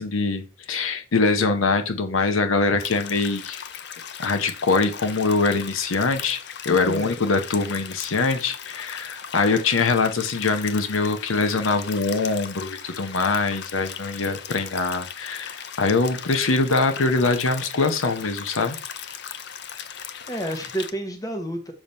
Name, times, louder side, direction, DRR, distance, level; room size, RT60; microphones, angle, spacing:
voice 1, 0.0-3.6 4.2-6.4 6.6-18.8, left 3 dB, 80° left, 7 dB, 0.8 m, -23 dB
sound 1, 2.8-20.9, left 8 dB, 55° left, 0.5 m, -38 dB
voice 2, 6.7-7.1 20.3-21.7, right 1 dB, 20° left, 5 dB, 1.0 m, -30 dB
7.0 x 3.0 x 5.3 m, 0.33 s
head